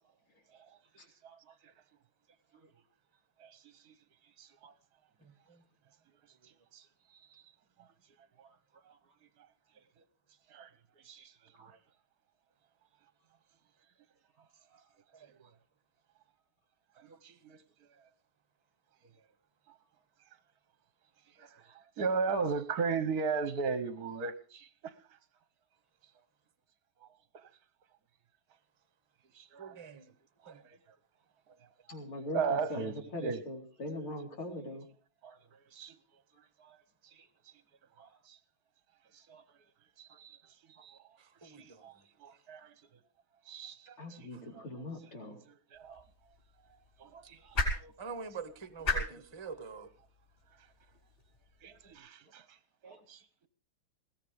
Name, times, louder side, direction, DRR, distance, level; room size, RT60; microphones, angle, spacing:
voice 1, 0.9-1.7 2.6-2.7 3.4-3.9 4.4-4.7 6.4-6.9 7.1-7.4 8.4-8.5 8.9-9.0 10.5-10.7 11.0-11.8 15.4-15.5 17.0-17.6 19.7-19.8 21.4-24.9 27.3-27.5 29.3-29.8 30.4-30.8 31.9-32.0 32.3-33.4 35.2-36.0 36.3-36.8 37.1-37.3 38.0-38.4 39.1-39.4 40.0-40.4 40.7-41.0 41.4-42.7 43.5-44.3 44.5-44.7 45.5-46.0 47.0-47.9 49.1-49.2 51.6-52.6 52.8-53.5, right 5 dB, 55° right, 1.2 m, -38 dB
voice 2, 5.2-5.6 6.4-6.5 15.1-15.4 29.6-30.1 30.5-30.6 41.2-41.9 44.3-44.4 48.0-49.9, right 5 dB, 20° right, 0.8 m, -46 dB
voice 3, 31.9-34.9 44.0-45.4 52.8-53.0, left 1 dB, 75° left, 4.9 m, -41 dB
sound 1, 45.7-52.0, left 2 dB, 30° left, 5.0 m, -39 dB
21.0 x 17.5 x 3.4 m
omnidirectional pair, 2.3 m